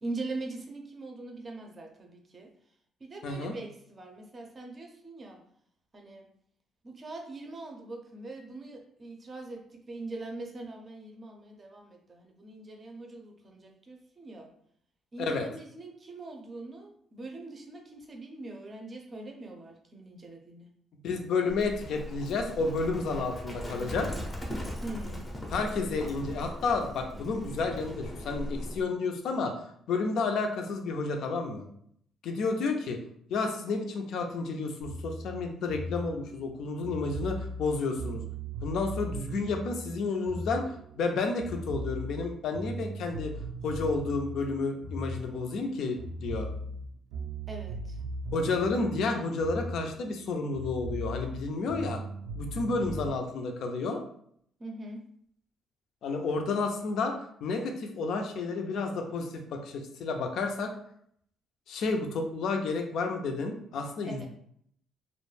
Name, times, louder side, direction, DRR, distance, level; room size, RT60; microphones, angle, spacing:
voice 1, 0.0-2.5 3.0-5.4 5.9-6.3 6.8-14.5 15.1-20.7 23.7-23.9 24.8-25.3 47.5-48.0 54.6-55.0 64.1-64.3, right 2 dB, 30° right, 2 dB, 0.5 m, -42 dB
voice 2, 3.2-3.5 15.2-15.5 21.0-24.1 25.5-29.5 29.9-31.7 32.2-33.0 33.3-38.2 38.6-43.3 43.6-46.5 48.3-52.0 52.4-54.0 56.0-57.1 57.4-60.7 61.7-64.3, left 3 dB, 70° left, 4 dB, 0.4 m, -31 dB
Livestock farm animals working animals, 21.5-28.8, equal, 15° left, 0.5 m, -39 dB
sound 1, 34.8-41.1 41.4-45.7 46.0-50.3 50.5-53.1, right 1 dB, 80° right, 0.4 m, -38 dB
2.3 x 2.1 x 3.1 m, 0.67 s
cardioid pair, 120°, 0 cm